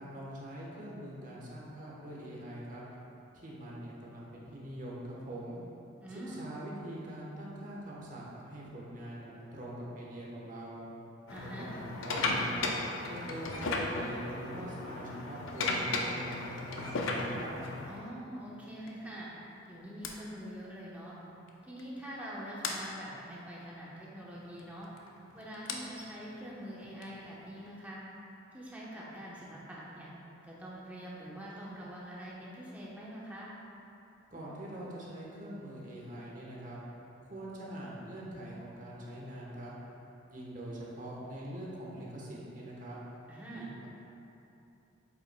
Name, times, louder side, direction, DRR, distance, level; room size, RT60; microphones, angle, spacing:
voice 1, 0.0-2.8 3.3-5.6 6.3-10.8 11.4-12.7 13.1-17.5 34.3-36.8 37.2-39.7 40.3-43.0 43.5-43.9, right 1 dB, 40° right, -5 dB, 1.1 m, -43 dB
voice 2, 6.0-6.5 11.3-11.7 17.9-19.3 19.7-21.1 21.6-24.9 25.3-28.0 28.5-30.1 30.4-33.5 43.3-43.7, equal, 10° right, -6 dB, 0.9 m, -44 dB
sound 1, 11.3-18.1 18.9-19.1 20.0-20.1 21.5-21.6 21.8-22.0 22.6-22.8 24.5-27.7, left 2 dB, 90° left, 0.6 m, -35 dB
8.2 x 5.3 x 2.2 m, 2.9 s
head